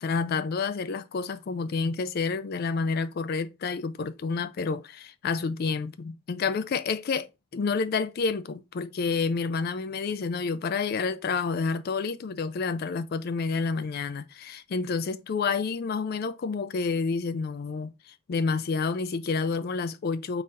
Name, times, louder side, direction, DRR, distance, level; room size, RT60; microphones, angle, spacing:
voice 1, 0.0-20.4, left 4 dB, 45° left, 0.3 m, -29 dB
3.9 x 2.5 x 4.0 m
head